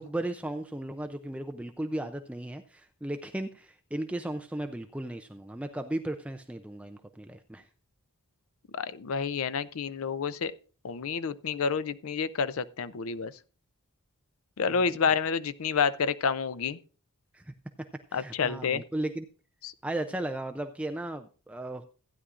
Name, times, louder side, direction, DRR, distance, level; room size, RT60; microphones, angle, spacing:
voice 1, 0.0-7.7 14.7-15.0 17.3-17.5 18.1-19.3 19.8-21.8, right 1 dB, 5° right, 0.4 m, -36 dB
voice 2, 8.7-10.5 10.8-13.3 14.6-16.8 18.1-18.8 19.6-19.7, left 6 dB, 65° left, 0.5 m, -29 dB
15.5 x 9.7 x 2.4 m
head